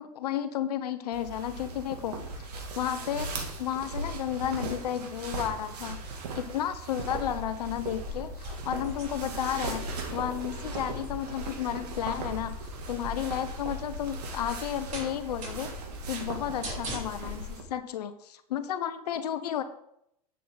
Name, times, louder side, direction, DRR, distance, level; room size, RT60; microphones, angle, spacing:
voice 1, 0.0-2.3 2.7-3.3 3.6-12.6 12.9-15.7 16.1-19.6, left 10 dB, 85° left, 10 dB, 1.1 m, -32 dB
sound 1, 1.1-17.6, right 3 dB, 85° right, 2.7 m, -38 dB
sound 2, 7.0-17.5, left 2 dB, 40° right, 4.6 m, -42 dB
11.0 x 8.4 x 4.1 m, 0.74 s
hypercardioid pair, 110°, 20 cm